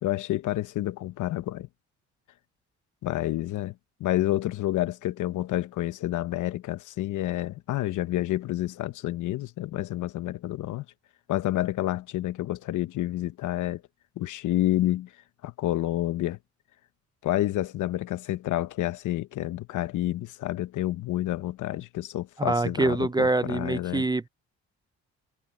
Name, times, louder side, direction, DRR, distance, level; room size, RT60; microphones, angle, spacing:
voice 1, 0.0-1.7 3.0-3.7 4.0-10.8 11.3-13.8 14.2-15.1 15.4-16.4 17.2-24.1, left 14 dB, 80° left, 1.0 m, -29 dB
voice 2, 22.4-24.3, right 2 dB, 15° right, 0.5 m, -25 dB
cardioid pair, 90°, 30 cm